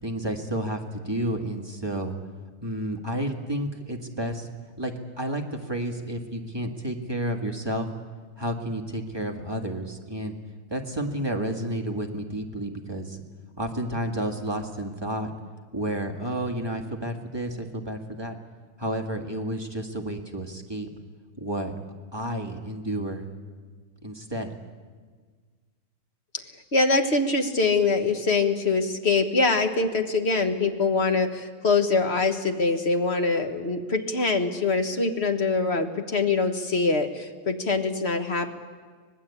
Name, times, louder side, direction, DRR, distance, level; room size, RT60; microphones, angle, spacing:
voice 1, 0.0-2.2 2.6-4.5 4.8-7.9 8.4-10.3 10.7-13.2 13.6-15.3 15.7-18.4 18.8-20.9 21.4-21.7 22.1-23.3 24.0-24.5, right 1 dB, 15° right, 2 dB, 1.7 m, -31 dB
voice 2, 26.7-38.5, left 3 dB, 35° left, 6 dB, 1.6 m, -24 dB
25.0 x 19.5 x 8.5 m, 1.5 s
omnidirectional pair, 2.3 m